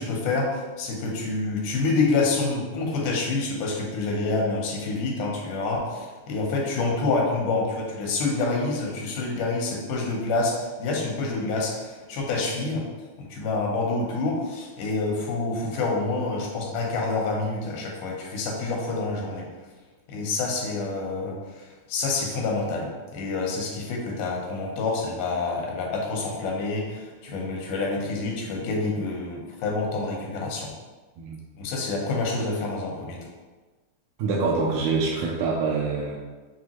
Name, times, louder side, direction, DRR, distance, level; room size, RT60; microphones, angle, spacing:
voice 1, 0.0-10.5 10.8-12.8 13.2-19.4 20.1-30.7 31.6-33.2, left 3 dB, 85° left, -1 dB, 2.4 m, -27 dB
voice 2, 34.2-36.2, right 4 dB, 80° right, -4 dB, 1.9 m, -25 dB
6.2 x 2.5 x 2.9 m, 1.3 s
omnidirectional pair, 3.5 m